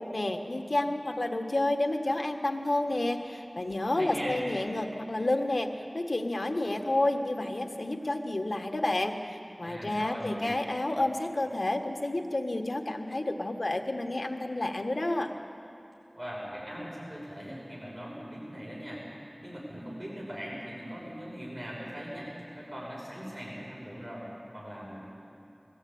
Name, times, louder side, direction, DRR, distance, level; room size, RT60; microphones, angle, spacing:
voice 1, 0.0-15.3, left 2 dB, 80° left, 4 dB, 1.4 m, -30 dB
voice 2, 3.9-4.4 9.6-10.6 16.1-19.0 19.4-25.0, equal, 40° right, -5 dB, 5.9 m, -40 dB
21.0 x 15.0 x 8.6 m, 2.8 s
wide cardioid pair, 40°, 0 cm